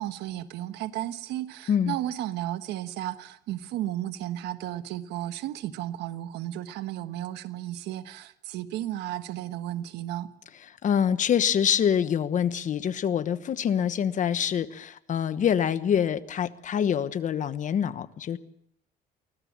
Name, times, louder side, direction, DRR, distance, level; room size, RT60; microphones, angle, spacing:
voice 1, 0.0-10.3, right 13 dB, 85° right, 1.3 m, -34 dB
voice 2, 10.8-18.4, left 8 dB, 50° left, 1.2 m, -25 dB
24.0 x 17.0 x 7.3 m
cardioid pair, 110°, 17 cm